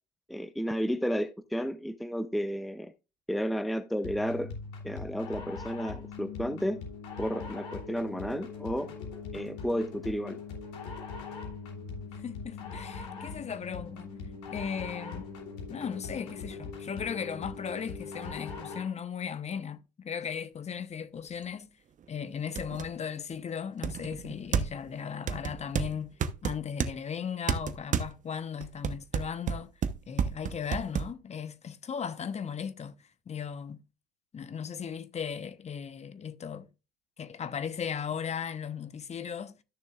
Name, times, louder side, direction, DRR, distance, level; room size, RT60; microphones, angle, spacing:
voice 1, 0.3-2.9 3.3-4.5 4.8-6.8 7.2-8.9 9.3-10.4, equal, ahead, 0.7 m, -32 dB
sound 1, 4.0-19.0, left 4 dB, 75° left, 3.2 m, -41 dB
voice 2, 12.2-14.1 14.5-15.3 15.7-21.7 22.1-26.1 26.4-29.7 30.1-33.0 33.3-33.8 34.3-36.7 37.2-39.6, left 7 dB, 30° left, 1.0 m, -37 dB
sound 2, 21.4-21.5 22.0-22.1 22.6-22.9 23.8-24.9 25.3-26.9 27.5-28.1 28.6-31.1, right 7 dB, 35° right, 1.0 m, -31 dB
13.5 x 6.6 x 2.5 m
hypercardioid pair, 75°, 21 cm